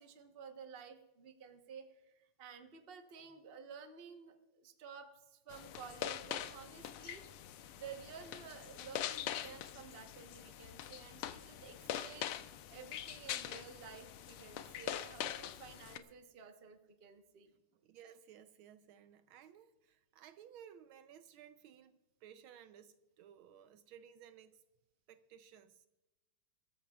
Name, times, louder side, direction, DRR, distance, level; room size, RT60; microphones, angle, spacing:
voice 1, 0.0-7.2 7.8-12.3 12.7-17.5, right 6 dB, 35° right, 1.0 m, -53 dB
sound 1, 5.5-16.0, left 10 dB, 85° left, 1.6 m, -44 dB
voice 2, 17.8-24.6 25.1-25.9, right 9 dB, 75° right, 1.4 m, -58 dB
23.5 x 13.5 x 2.4 m
omnidirectional pair, 2.4 m